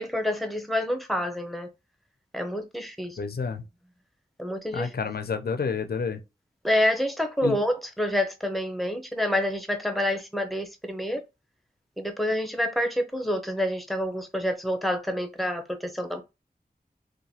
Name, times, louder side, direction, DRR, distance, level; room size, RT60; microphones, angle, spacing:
voice 1, 0.0-1.7 2.3-3.2 4.4-4.9 6.6-11.2 12.0-16.2, left 1 dB, ahead, 0.6 m, -28 dB
voice 2, 3.2-3.6 4.7-6.2 7.4-7.6, left 5 dB, 70° left, 0.4 m, -29 dB
2.9 x 2.2 x 2.7 m
wide cardioid pair, 40°, 17 cm